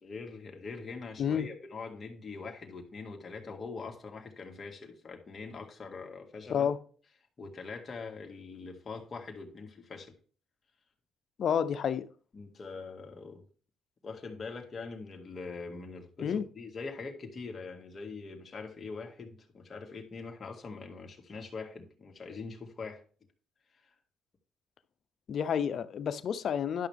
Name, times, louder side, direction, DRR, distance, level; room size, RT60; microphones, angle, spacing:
voice 1, 0.0-6.7 7.4-10.1 12.3-13.4 14.0-23.0 23.7-23.9, left 4 dB, 40° left, 2.0 m, -43 dB
voice 2, 11.4-12.1 16.2-16.5 25.3-26.9, left 8 dB, 60° left, 0.6 m, -30 dB
11.0 x 5.9 x 3.5 m
cardioid pair, 90°, 0 cm